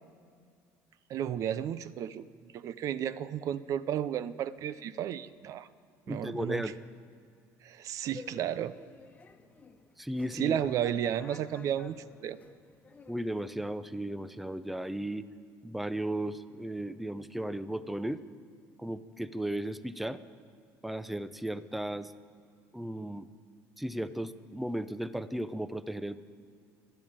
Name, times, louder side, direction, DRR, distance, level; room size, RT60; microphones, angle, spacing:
voice 1, 1.1-2.2 2.5-5.7 6.1-6.7 7.6-8.7 10.3-12.0 12.2-12.4, right 10 dB, 55° right, 15 dB, 0.5 m, -33 dB
voice 2, 6.1-6.8 10.0-10.6 13.1-15.2 15.6-18.2 18.8-20.2 20.8-22.1 22.7-23.3 23.8-26.2, right 1 dB, ahead, 13 dB, 0.5 m, -35 dB
sound 1, 8.0-13.4, left 4 dB, 20° left, 1.2 m, -52 dB
12.5 x 11.5 x 8.9 m, 2.3 s
cardioid pair, 115°, 7 cm